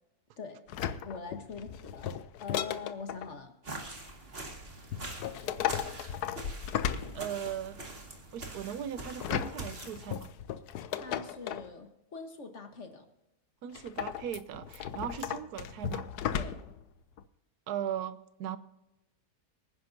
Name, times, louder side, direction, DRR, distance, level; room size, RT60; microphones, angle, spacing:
sound 1, 0.7-3.3 4.9-7.7 9.0-11.7 13.7-16.8 17.2-17.3, left 9 dB, 85° left, 1.2 m, -35 dB
voice 1, 1.0-3.5 10.9-13.1 16.3-16.6, left 4 dB, 50° left, 6 dB, 1.7 m, -43 dB
sound 2, 3.6-10.2, right 2 dB, 40° right, 2.4 m, -44 dB
voice 2, 7.1-7.8 8.3-10.3 13.6-16.1 17.7-18.6, right 9 dB, 85° right, 14 dB, 1.2 m, -38 dB
24.0 x 10.5 x 2.8 m, 0.92 s
omnidirectional pair, 1.6 m